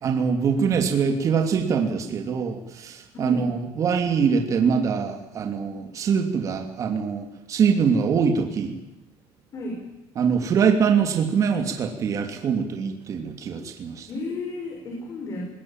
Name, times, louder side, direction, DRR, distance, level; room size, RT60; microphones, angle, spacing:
voice 1, 0.0-8.7 10.2-14.1, right 6 dB, 35° right, 4 dB, 2.9 m, -23 dB
voice 2, 14.1-15.5, left 2 dB, 35° left, 1 dB, 5.8 m, -32 dB
21.0 x 19.5 x 9.1 m, 0.98 s
cardioid pair, 145°, 9 cm